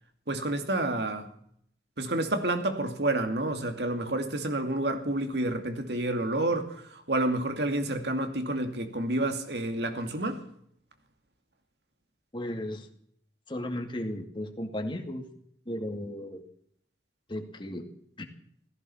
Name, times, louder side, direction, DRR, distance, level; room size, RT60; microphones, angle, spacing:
voice 1, 0.3-1.3 2.0-10.4, right 2 dB, 70° right, 2.4 m, -29 dB
voice 2, 12.3-12.9 13.5-15.3 15.7-16.4 17.3-17.9 18.2-18.3, left 1 dB, 30° left, 2.2 m, -35 dB
16.5 x 15.0 x 5.7 m
head